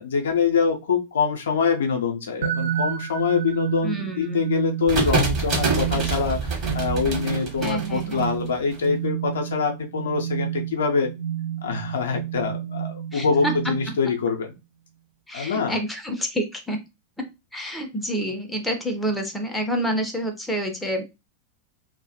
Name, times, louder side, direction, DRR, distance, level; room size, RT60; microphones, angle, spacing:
voice 1, 0.0-11.1 11.6-14.5 15.3-15.8, left 5 dB, 65° left, 3 dB, 0.4 m, -24 dB
sound 1, 2.4-14.1, right 10 dB, 60° right, 0.4 m, -30 dB
voice 2, 3.8-4.4 7.6-8.3 13.1-13.8 15.3-16.8 17.2-21.0, equal, 5° left, 4 dB, 0.5 m, -28 dB
sound 2, 4.9-8.8, right 3 dB, 35° right, 1.0 m, -26 dB
2.1 x 2.1 x 2.7 m, 0.25 s
figure-of-eight pair, 90°, 0 cm